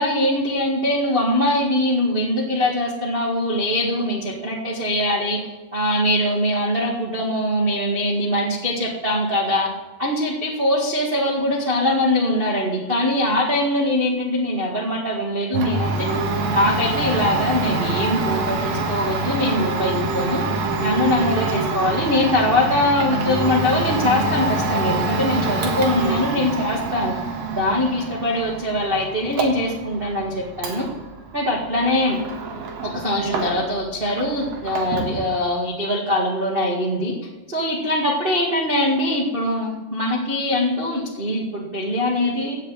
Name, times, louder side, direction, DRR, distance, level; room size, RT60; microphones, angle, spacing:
voice 1, 0.0-5.4 5.7-9.7 10.0-15.9 16.5-20.4 20.8-27.2 27.5-30.9 31.3-32.2 32.8-37.1 37.5-42.6, left 1 dB, 85° right, -2 dB, 0.5 m, -22 dB
Domestic sounds home sounds, 15.5-33.9 34.1-35.2, right 3 dB, 65° right, 3.1 m, -26 dB
16.5 x 7.4 x 7.6 m, 1.1 s
omnidirectional pair, 4.6 m